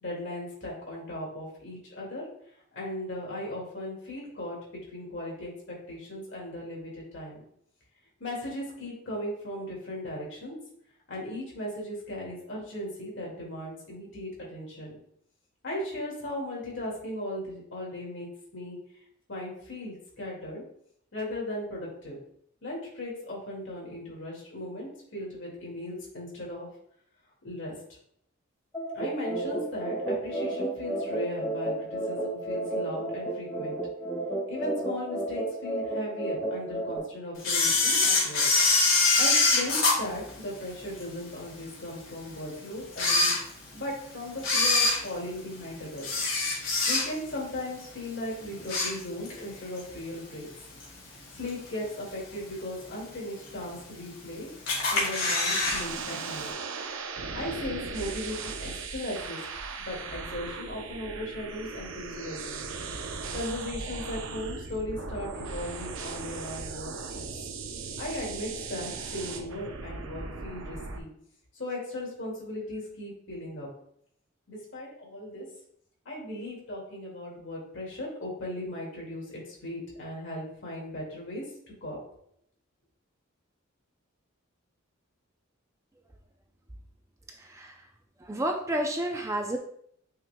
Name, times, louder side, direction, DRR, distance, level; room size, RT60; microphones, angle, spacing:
voice 1, 0.0-2.3 2.7-4.6 4.9-7.4 8.2-10.5 11.1-15.0 15.6-18.3 18.5-18.8 19.3-20.6 21.1-22.2 22.6-26.7 27.4-27.7 28.9-33.8 34.5-38.5 39.2-43.3 43.7-46.1 46.7-50.5 51.3-54.5 54.9-56.5 57.3-59.4 59.9-62.7 63.3-67.3 68.0-71.1 71.6-73.7 74.5-75.5 76.1-82.0, left 1 dB, 65° left, -3 dB, 2.1 m, -37 dB
sound 1, 28.7-37.0, right 2 dB, 15° left, 2.6 m, -32 dB
Camera, 37.4-41.0 41.5-41.6 42.3-42.4 42.9-43.9 44.4-47.4 47.7-48.0 48.4-49.4 49.8-49.9 50.8-50.9 51.5-51.9 52.3-52.4 52.6-52.7 52.9-53.0 53.7-54.2 54.7-55.8 56.1-56.2 56.4-56.5, left 3 dB, 85° left, 2.2 m, -24 dB
sound 2, 55.7-71.0, right 4 dB, 80° right, 0.7 m, -38 dB
voice 2, 87.4-87.9 88.2-89.6, right 1 dB, 15° right, 3 dB, 0.4 m, -31 dB
9.2 x 4.6 x 2.2 m, 0.68 s
head